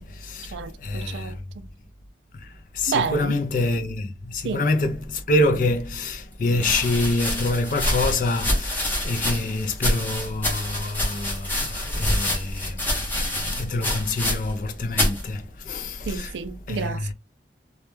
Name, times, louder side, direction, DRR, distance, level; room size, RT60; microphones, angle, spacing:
voice 1, 0.0-1.4 2.3-16.3 16.7-17.1, left 2 dB, 45° left, 0.3 m, -26 dB
voice 2, 0.5-1.7 2.9-3.4 4.4-4.6 16.1-17.1, right 5 dB, 75° right, 0.3 m, -30 dB
sound 1, 6.6-14.7 14.9-15.2 16.0-16.4, left 1 dB, 10° left, 0.6 m, -26 dB
2.1 x 2.1 x 3.0 m
head